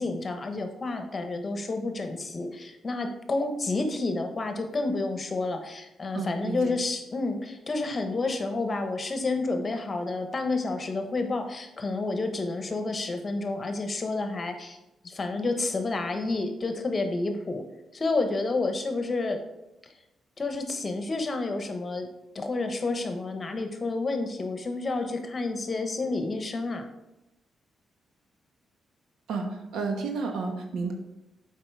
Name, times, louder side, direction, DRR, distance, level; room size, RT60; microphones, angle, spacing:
voice 1, 0.0-14.8 15.0-17.6 17.9-19.4 20.4-22.1 22.3-26.8, left 3 dB, 35° left, 6 dB, 1.2 m, -30 dB
voice 2, 6.1-6.7 29.3-30.9, right 4 dB, 80° right, 4 dB, 1.2 m, -31 dB
7.5 x 5.0 x 4.8 m, 0.95 s
cardioid pair, 75°, 0 cm